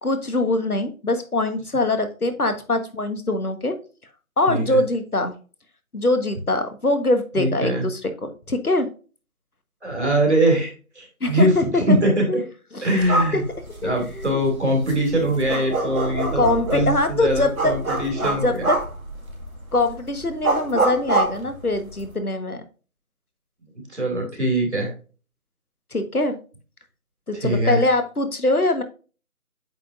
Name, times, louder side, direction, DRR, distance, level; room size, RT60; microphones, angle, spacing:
voice 1, 0.0-3.8 4.4-5.3 5.9-8.9 11.2-12.4 12.7-12.9 13.3-13.4 13.8-14.4 16.3-17.7 18.2-18.8 19.7-22.6 25.9-26.4 27.3-28.8, left 2 dB, 80° left, 8 dB, 1.4 m, -23 dB
voice 2, 4.5-4.8 7.3-7.8 9.8-11.6 11.9-12.2 12.8-13.4 13.8-18.7 23.9-24.9 27.3-27.8, right 1 dB, 50° right, 1 dB, 2.7 m, -22 dB
sound 1, 13.0-22.1, right 2 dB, 70° right, 2.2 m, -27 dB
8.3 x 4.9 x 2.6 m, 0.36 s
figure-of-eight pair, 165°, 44 cm